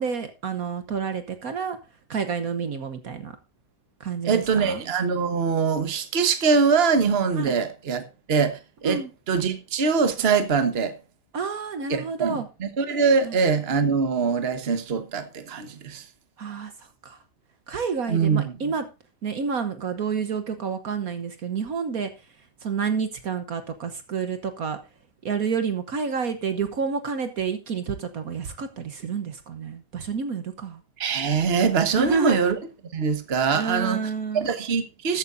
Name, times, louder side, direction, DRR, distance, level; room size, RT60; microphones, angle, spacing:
voice 1, 0.0-1.8 2.1-3.3 4.0-4.8 7.4-7.5 8.8-9.1 11.3-12.5 13.2-13.3 16.4-16.7 17.0-17.2 17.7-18.8 19.2-22.1 22.6-24.8 25.2-30.8 31.9-32.4 33.5-34.5, right 6 dB, 60° right, 1.5 m, -29 dB
voice 2, 4.2-9.0 9.3-10.9 11.9-16.0 18.1-18.6 31.0-32.6 32.9-35.2, right 5 dB, 40° right, 1.4 m, -23 dB
14.0 x 9.6 x 2.6 m
omnidirectional pair, 1.8 m